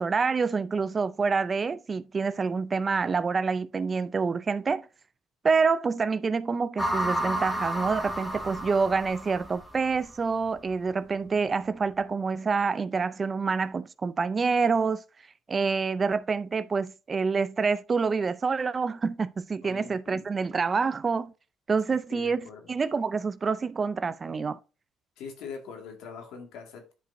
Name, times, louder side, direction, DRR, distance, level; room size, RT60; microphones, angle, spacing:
voice 1, 0.0-4.9 5.4-15.0 15.5-21.3 21.7-24.6, right 5 dB, 30° right, 0.4 m, -27 dB
sound 1, 6.8-10.1, right 1 dB, ahead, 1.2 m, -31 dB
voice 2, 19.6-20.2 22.1-22.7 25.2-26.9, left 6 dB, 85° left, 2.0 m, -43 dB
10.0 x 5.1 x 2.6 m
cardioid pair, 125°, 0 cm